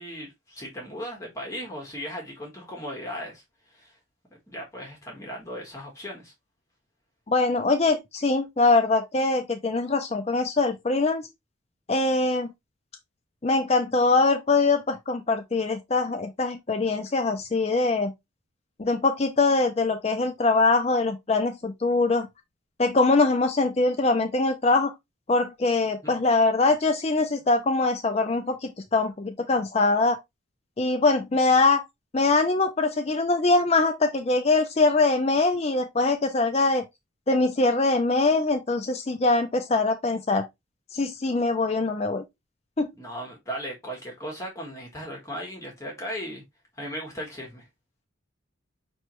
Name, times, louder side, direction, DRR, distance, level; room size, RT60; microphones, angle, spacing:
voice 1, 0.0-3.4 3.7-4.0 4.5-6.3 26.0-26.1 43.0-46.4 46.8-47.7, equal, 15° left, 1.4 m, -37 dB
voice 2, 7.3-11.3 11.9-12.5 13.4-18.1 18.8-22.3 22.8-24.9 25.3-30.2 30.8-31.8 32.1-36.8 37.3-40.4 40.9-42.2 42.8-42.9, left 3 dB, 30° left, 0.4 m, -23 dB
5.5 x 3.1 x 3.0 m
head